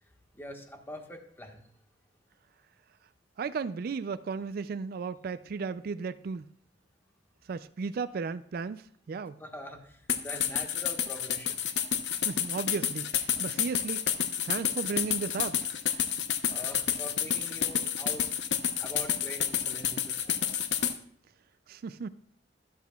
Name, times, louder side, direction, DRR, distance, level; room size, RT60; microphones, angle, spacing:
voice 1, 0.3-1.6 9.4-11.6 16.5-18.2 18.8-20.6, equal, 15° left, 1.4 m, -44 dB
voice 2, 3.4-6.5 7.5-9.4 12.3-14.1 14.4-15.7 21.7-22.1, right 5 dB, 55° right, 0.3 m, -35 dB
sound 1, 10.1-21.0, left 9 dB, 75° left, 0.7 m, -30 dB
13.0 x 11.5 x 2.3 m
head